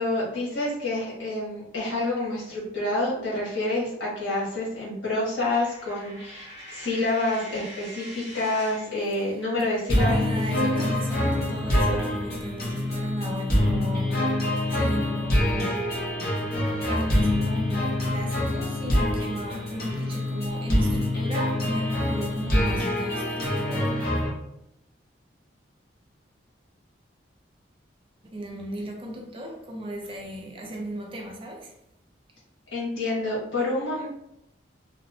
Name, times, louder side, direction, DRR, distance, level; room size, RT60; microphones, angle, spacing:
voice 1, 0.0-10.3 10.8-10.9 32.7-34.1, left 2 dB, 80° left, 1.3 m, -28 dB
Coin (dropping), 5.5-9.0, equal, 35° left, 1.1 m, -43 dB
voice 2, 9.3-16.0 16.8-23.9 28.3-31.7, equal, 30° right, 0.4 m, -35 dB
sound 1, 9.9-24.3, left 1 dB, 50° left, 0.7 m, -25 dB
2.8 x 2.0 x 2.6 m
head